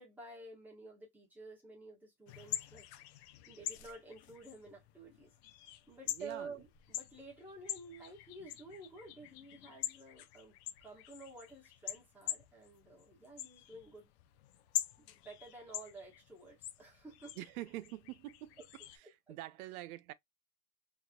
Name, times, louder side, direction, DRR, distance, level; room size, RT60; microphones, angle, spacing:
voice 1, 0.0-2.8 3.5-5.3 5.9-10.5 10.8-14.1 15.0-17.4 18.6-18.7 19.3-19.4, right 3 dB, 5° right, 1.2 m, -51 dB
sound 1, 2.3-19.0, left 13 dB, 50° left, 0.5 m, -45 dB
voice 2, 6.1-6.6 17.4-18.6 18.9-20.1, right 16 dB, 80° right, 0.6 m, -46 dB
3.3 x 2.8 x 2.3 m
supercardioid pair, 175°, 42 cm